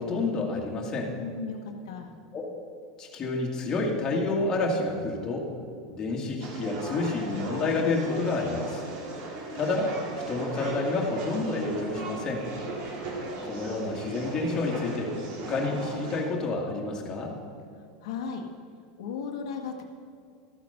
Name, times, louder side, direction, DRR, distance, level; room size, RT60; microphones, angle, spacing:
voice 1, 0.0-1.1 2.3-2.5 3.0-5.5 5.9-8.8 9.5-10.0 10.3-12.4 13.4-17.3, left 3 dB, 25° left, -1 dB, 2.0 m, -29 dB
voice 2, 1.2-2.1 18.0-18.5 19.0-19.8, left 5 dB, 75° left, 2 dB, 1.3 m, -35 dB
sound 1, 6.4-16.2, right 2 dB, 50° right, 2.3 m, -37 dB
13.5 x 8.8 x 5.7 m, 2.4 s
supercardioid pair, 150°, 3 cm